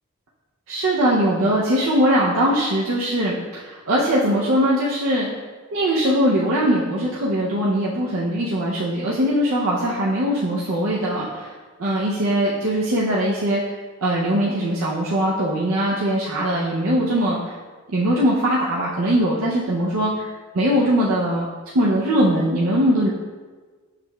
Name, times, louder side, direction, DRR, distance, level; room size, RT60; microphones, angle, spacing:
voice 1, 0.7-5.3 5.7-11.5 11.8-13.7 14.0-17.5 17.9-21.5 21.7-23.1, equal, 75° right, -6 dB, 0.6 m, -21 dB
6.5 x 3.1 x 2.2 m, 1.4 s
head